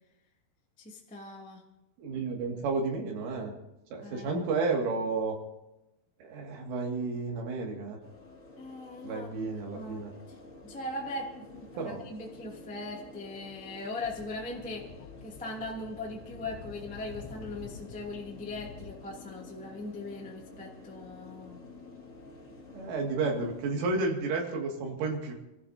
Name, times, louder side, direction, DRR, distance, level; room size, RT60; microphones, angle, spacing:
voice 1, 0.8-1.6 4.0-4.4 8.5-10.4 10.6-14.9 15.2-21.6, left 2 dB, 10° left, -3 dB, 0.5 m, -40 dB
voice 2, 2.0-3.5 3.9-5.4 6.2-8.0 9.0-10.1 11.8-12.0 22.7-25.3, right 3 dB, 80° right, 0 dB, 4.8 m, -31 dB
sound 1, 8.0-24.0, left 3 dB, 30° left, 1.4 m, -50 dB
Speech / Wind, 14.0-18.9, left 6 dB, 65° left, 2.8 m, -48 dB
28.5 x 14.5 x 2.8 m, 0.94 s
omnidirectional pair, 5.6 m